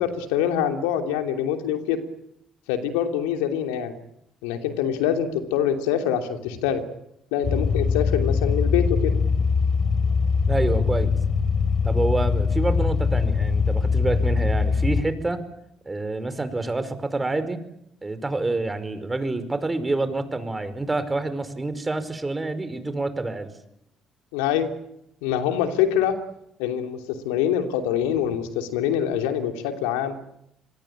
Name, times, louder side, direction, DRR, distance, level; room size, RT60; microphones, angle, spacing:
voice 1, 0.0-2.0 2.7-3.9 4.4-6.8 7.3-9.1 24.3-24.7 25.2-26.2 26.6-30.2, left 9 dB, 80° left, 6 dB, 2.9 m, -25 dB
sound 1, 7.4-15.0, left 5 dB, 55° left, 4.2 m, -22 dB
voice 2, 10.5-11.1 11.8-15.4 15.8-17.6 18.0-23.5, right 2 dB, 20° right, 11 dB, 5.1 m, -27 dB
26.5 x 23.5 x 8.8 m, 0.81 s
hypercardioid pair, 50°, 0 cm